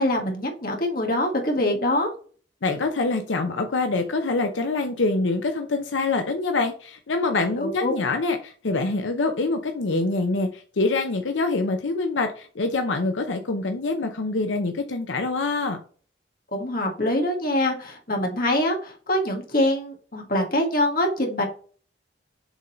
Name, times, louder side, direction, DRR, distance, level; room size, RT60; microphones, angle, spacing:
voice 1, 0.0-2.1 7.6-7.9 16.5-21.4, left 1 dB, 50° left, 2 dB, 1.8 m, -24 dB
voice 2, 2.6-15.8, left 3 dB, 85° left, 6 dB, 0.7 m, -25 dB
7.1 x 3.9 x 4.4 m, 0.42 s
head